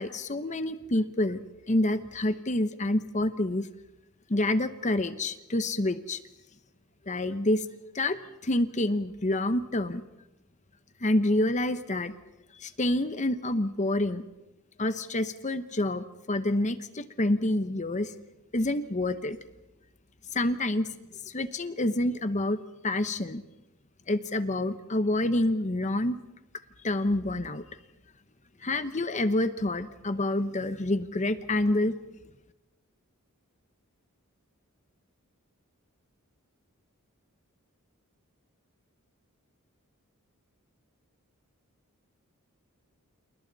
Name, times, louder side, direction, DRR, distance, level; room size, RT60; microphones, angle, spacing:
voice 1, 0.0-1.4 1.7-3.7 4.3-6.2 7.1-7.6 7.9-8.2 8.4-10.0 11.0-12.2 12.6-14.2 14.8-18.1 18.5-19.4 20.3-20.9 21.3-23.4 24.1-26.2 26.8-27.6 28.6-31.9, left 1 dB, 35° left, 11 dB, 1.0 m, -27 dB
30.0 x 28.5 x 4.1 m, 0.99 s
head